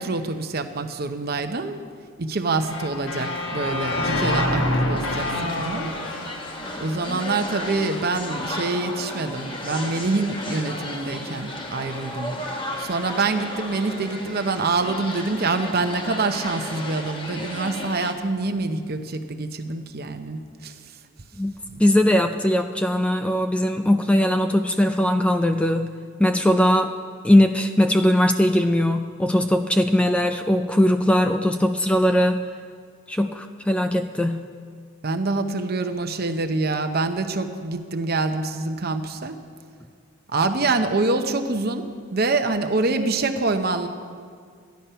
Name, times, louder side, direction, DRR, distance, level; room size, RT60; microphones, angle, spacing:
voice 1, 0.0-1.8 2.2-5.9 6.3-6.4 6.8-12.4 12.8-20.8 21.7-21.8 35.0-39.4 40.3-43.9, right 3 dB, 50° right, 8 dB, 0.8 m, -26 dB
sound 1, 2.6-7.6, left 1 dB, 70° left, 1.2 m, -27 dB
sound 2, 5.0-18.1, left 1 dB, 25° left, 1.1 m, -34 dB
voice 2, 21.8-25.9 26.2-26.9 27.2-32.4 33.1-34.5, left 1 dB, 5° left, 7 dB, 0.3 m, -20 dB
14.0 x 10.5 x 5.6 m, 2.1 s
head